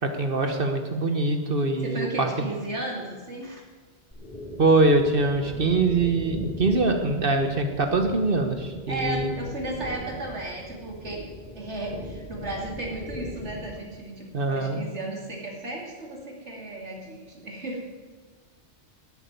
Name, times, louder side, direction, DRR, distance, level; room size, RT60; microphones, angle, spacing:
voice 1, 0.0-2.3 4.6-9.3 14.3-14.8, right 2 dB, 50° right, 6 dB, 1.3 m, -23 dB
voice 2, 1.8-3.6 5.4-5.5 8.9-11.3 11.5-18.0, right 2 dB, 75° right, 0 dB, 3.0 m, -34 dB
sound 1, 4.1-13.8, left 1 dB, 5° left, 5.2 m, -40 dB
12.0 x 8.4 x 9.3 m, 1.4 s
omnidirectional pair, 1.2 m